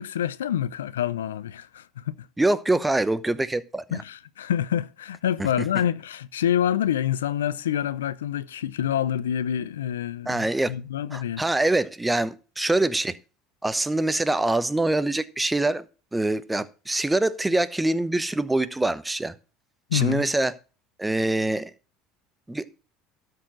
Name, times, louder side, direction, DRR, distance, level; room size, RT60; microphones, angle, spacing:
voice 1, 0.0-2.2 3.9-11.4 19.9-20.3, left 10 dB, 85° left, 0.4 m, -27 dB
voice 2, 2.4-4.0 10.3-10.7 11.1-13.2 13.6-15.8 16.1-19.3 19.9-20.5 21.0-21.7 22.5-22.7, right 2 dB, 10° right, 0.9 m, -24 dB
12.5 x 4.8 x 6.1 m
hypercardioid pair, 75°, 0 cm